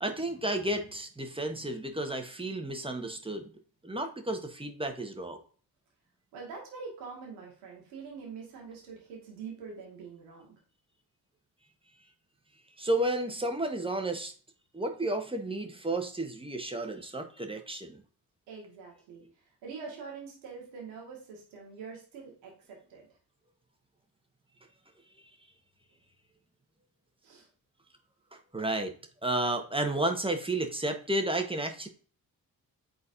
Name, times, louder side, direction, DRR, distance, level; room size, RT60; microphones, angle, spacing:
voice 1, 0.0-3.4 3.8-5.4 12.8-14.3 14.7-18.0 28.5-28.9 29.2-31.9, right 1 dB, 10° right, 4 dB, 1.3 m, -32 dB
voice 2, 6.3-10.6 18.5-23.1 27.2-27.5, right 5 dB, 85° right, -2 dB, 1.9 m, -45 dB
9.7 x 4.0 x 2.6 m, 0.42 s
hypercardioid pair, 45°, 48 cm